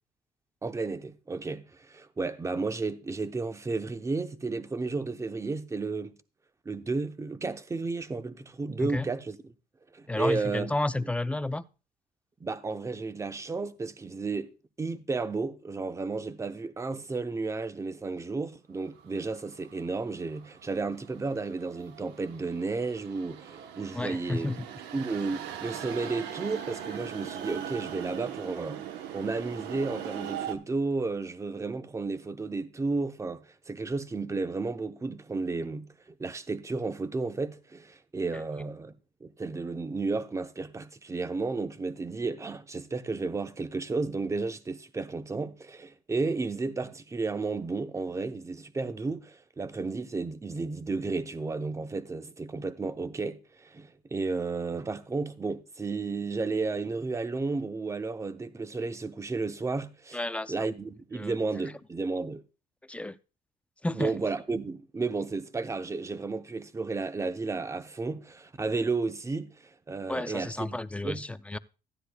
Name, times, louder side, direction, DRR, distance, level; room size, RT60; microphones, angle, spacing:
voice 1, 0.6-6.2 6.6-9.5 9.9-10.7 11.0-11.1 12.4-14.5 14.8-24.5 24.9-28.8 29.1-38.9 39.2-60.2 60.5-62.4 63.9-70.8 71.0-71.2, right 3 dB, 15° right, 0.8 m, -33 dB
voice 2, 10.1-11.6 24.0-24.6 38.3-38.4 60.1-60.5 61.1-61.3 62.9-63.2 63.8-64.1 70.1-71.6, left 2 dB, 5° left, 0.4 m, -31 dB
sound 1, 18.9-30.5, right 10 dB, 90° right, 1.0 m, -40 dB
14.5 x 9.9 x 2.3 m
cardioid pair, 110°, 17 cm